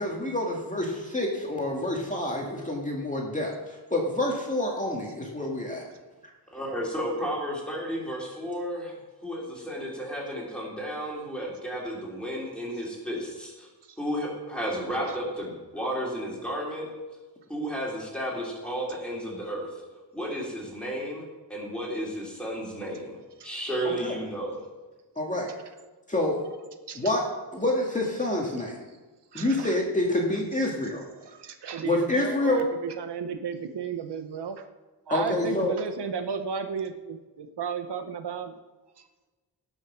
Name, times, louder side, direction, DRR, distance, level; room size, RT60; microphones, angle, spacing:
voice 1, 0.0-5.9 23.8-24.2 25.2-25.5 26.1-26.4 27.0-27.2 27.5-28.8 29.3-31.0 31.8-32.7 35.1-35.7, left 1 dB, 20° left, -1 dB, 1.9 m, -27 dB
voice 2, 6.5-8.9 9.2-13.7 14.0-16.9 17.5-19.7 20.1-21.2 21.5-24.6, equal, ahead, -4 dB, 3.9 m, -33 dB
voice 3, 29.3-29.8 31.2-34.6 35.1-38.6, right 6 dB, 75° right, 8 dB, 1.0 m, -34 dB
18.0 x 6.4 x 6.0 m, 1.2 s
wide cardioid pair, 160°, 41 cm